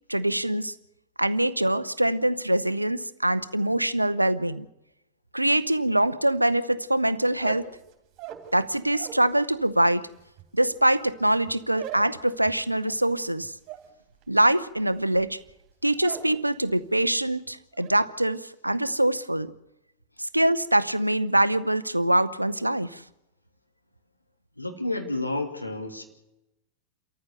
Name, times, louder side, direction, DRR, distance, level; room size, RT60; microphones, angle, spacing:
voice 1, 0.1-0.7 1.2-4.7 5.3-7.7 8.5-10.1 10.5-13.5 14.3-15.4 15.8-19.5 20.2-23.0, right 1 dB, 85° right, 0.7 m, -24 dB
sound 1, 7.3-9.3 9.6-16.4 16.7-17.2 17.5-18.0, right 10 dB, 40° right, 3.2 m, -43 dB
voice 2, 24.6-26.0, left 2 dB, 85° left, 2.7 m, -30 dB
28.5 x 14.0 x 6.9 m
figure-of-eight pair, 90°, 0 cm